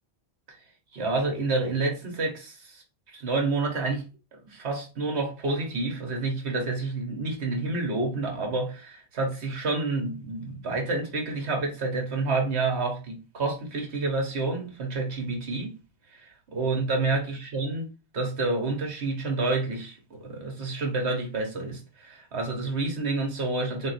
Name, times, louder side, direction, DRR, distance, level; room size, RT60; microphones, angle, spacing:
voice 1, 0.9-4.0 4.3-15.8 16.1-17.9 18.1-23.9, right 3 dB, 75° right, 1.4 m, -29 dB
3.8 x 2.6 x 4.1 m
omnidirectional pair, 1.1 m